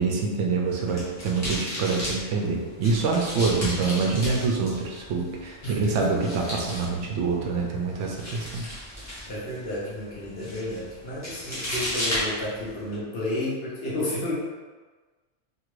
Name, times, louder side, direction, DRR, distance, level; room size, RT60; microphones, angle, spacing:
voice 1, 0.0-8.7, right 4 dB, 75° right, -1 dB, 0.9 m, -26 dB
sound 1, 0.6-13.0, equal, 15° left, 0.8 m, -35 dB
voice 2, 5.6-6.1 9.3-14.3, left 1 dB, 55° left, -7 dB, 1.0 m, -32 dB
2.9 x 2.4 x 3.0 m, 1.3 s
omnidirectional pair, 1.3 m